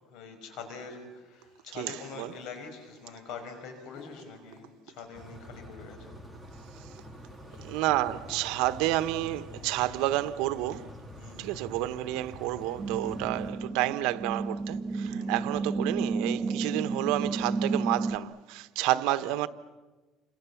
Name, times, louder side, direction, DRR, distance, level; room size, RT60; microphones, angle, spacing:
voice 1, 0.1-6.2 11.2-11.5 13.0-13.4 15.1-15.3 18.9-19.3, left 5 dB, 70° left, 5.7 m, -44 dB
sound 1, 0.8-5.4 5.7-6.5 7.1-7.6 7.9-8.0 8.2-9.9, left 4 dB, 55° left, 4.3 m, -57 dB
voice 2, 1.7-2.3 7.6-10.9 11.4-19.5, right 15 dB, 80° right, 1.1 m, -30 dB
sound 2, 5.1-13.5, equal, ahead, 2.3 m, -46 dB
sound 3, 12.8-18.2, right 4 dB, 20° right, 1.3 m, -32 dB
29.5 x 26.5 x 7.2 m
cardioid pair, 145°, 0 cm